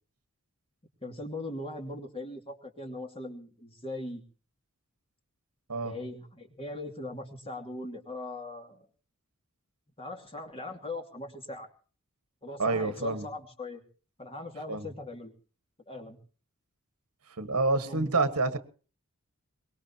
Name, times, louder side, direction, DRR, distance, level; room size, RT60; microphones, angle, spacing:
voice 1, 1.0-4.2 5.8-8.9 10.0-11.7 12.4-13.8 14.2-15.3 15.9-16.2 17.9-18.1, left 2 dB, 25° left, 4 dB, 2.6 m, -40 dB
voice 2, 12.6-13.3 14.7-14.9 17.4-18.6, right 3 dB, 90° right, 11 dB, 1.6 m, -28 dB
23.0 x 20.0 x 2.9 m, 0.38 s
head